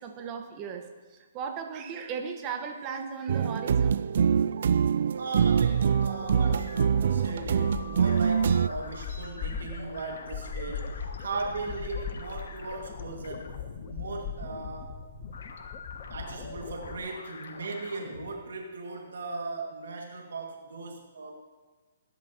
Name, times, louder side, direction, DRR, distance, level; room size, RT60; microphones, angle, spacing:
voice 1, 0.0-4.1 6.4-6.5, right 6 dB, 25° right, 5 dB, 1.3 m, -37 dB
sound 1, 3.3-8.7, right 7 dB, 65° right, 0.3 m, -24 dB
sound 2, 5.1-18.3, left 4 dB, 80° left, 1.4 m, -45 dB
voice 2, 5.2-13.5 13.9-15.0 16.1-21.3, right 3 dB, 85° right, 1 dB, 2.0 m, -38 dB
sound 3, 6.1-17.0, left 6 dB, 25° left, 0.8 m, -40 dB
19.5 x 11.0 x 2.9 m, 1.3 s
hypercardioid pair, 155°, 0 cm